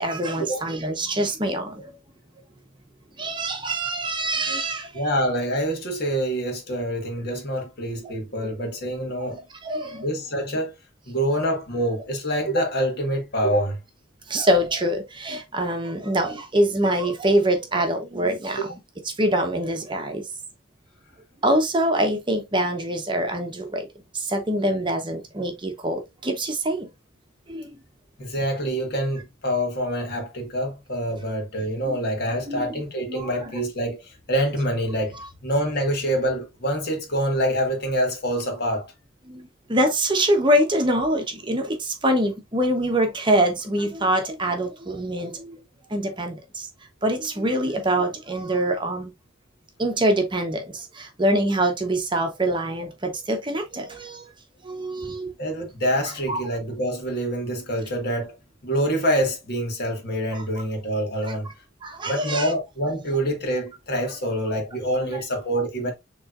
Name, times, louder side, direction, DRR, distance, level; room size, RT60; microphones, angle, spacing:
voice 1, 0.0-2.0 3.2-5.0 8.4-8.5 9.6-10.1 14.3-18.7 19.1-20.3 21.4-23.9 24.1-26.9 27.5-27.8 31.8-32.0 32.5-32.7 33.1-33.3 39.3-45.6 45.9-46.7 47.0-49.1 49.8-54.2 54.6-55.3 56.3-56.4 60.3-60.4 61.8-62.5 65.0-65.2, right 1 dB, 25° right, 0.9 m, -24 dB
voice 2, 4.9-9.4 10.0-10.7 11.1-13.8 18.6-18.7 28.2-35.2 35.4-38.9 55.4-61.5 62.0-65.9, equal, 55° left, 1.6 m, -26 dB
6.9 x 3.1 x 2.5 m
head